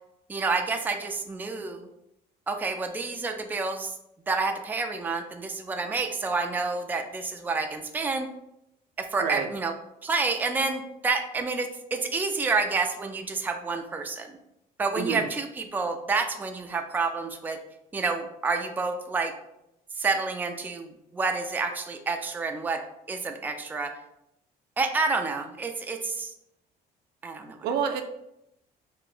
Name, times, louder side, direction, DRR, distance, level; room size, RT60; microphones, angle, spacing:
voice 1, 0.3-1.9 2.5-3.9 4.3-8.3 9.0-9.7 10.0-14.4 14.8-17.6 17.9-19.3 20.0-22.8 23.1-23.9 24.8-26.3 27.2-27.6, right 4 dB, 10° right, 4 dB, 0.3 m, -29 dB
voice 2, 15.0-15.3 27.6-28.0, right 7 dB, 75° right, 7 dB, 0.5 m, -28 dB
2.8 x 2.5 x 3.7 m, 0.82 s
cardioid pair, 110°, 17 cm